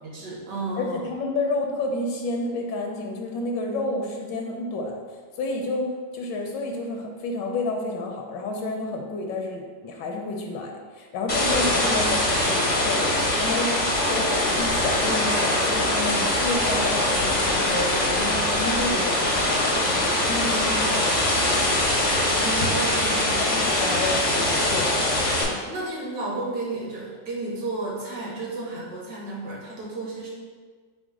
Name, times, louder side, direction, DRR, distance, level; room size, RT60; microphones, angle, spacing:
voice 1, 0.0-1.1 22.4-24.0 25.3-30.3, right 2 dB, 65° right, -4 dB, 1.5 m, -33 dB
voice 2, 0.8-5.0 5.4-21.2 23.1-25.0, left 2 dB, 80° left, 1 dB, 1.2 m, -30 dB
sound 1, 11.3-25.4, left 1 dB, 55° left, 0.4 m, -23 dB
5.0 x 2.1 x 4.6 m, 1.5 s
omnidirectional pair, 1.9 m